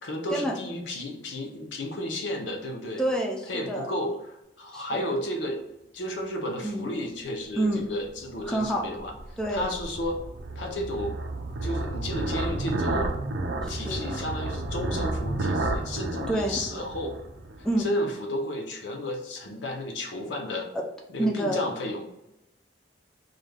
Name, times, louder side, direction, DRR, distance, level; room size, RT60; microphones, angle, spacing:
voice 1, 0.0-3.0 3.5-9.1 9.5-10.2 10.6-11.2 11.6-13.1 13.7-17.2 17.8-20.7 21.1-22.0, left 1 dB, 85° left, 2 dB, 0.6 m, -32 dB
voice 2, 3.0-3.9 4.7-5.0 6.6-6.9 7.6-7.8 8.5-8.8 9.4-9.7 13.6-14.2 16.3-16.6 17.6-17.9 21.2-21.6, right 1 dB, 5° left, -1 dB, 0.3 m, -28 dB
sound 1, 8.2-17.8, right 2 dB, 90° right, 0.4 m, -31 dB
2.4 x 2.2 x 3.2 m, 0.88 s
head